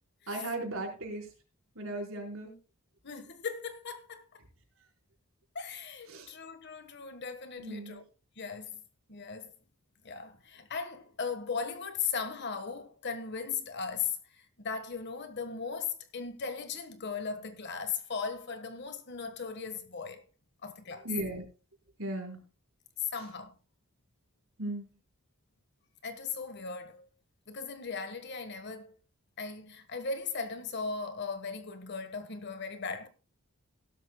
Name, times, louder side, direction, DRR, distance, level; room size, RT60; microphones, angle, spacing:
voice 1, 0.3-1.3 1.7-2.5 6.1-6.3 7.6-8.0 21.0-21.4 22.0-22.4 24.6-24.9, right 2 dB, 65° right, 4.4 m, -36 dB
voice 2, 3.0-4.4 5.5-8.0 8.4-8.8 9.1-9.5 10.0-20.2 20.6-21.1 23.1-23.5 26.0-27.1 27.5-29.0 29.4-33.1, left 5 dB, 50° left, 1.4 m, -38 dB
16.5 x 13.0 x 2.2 m
head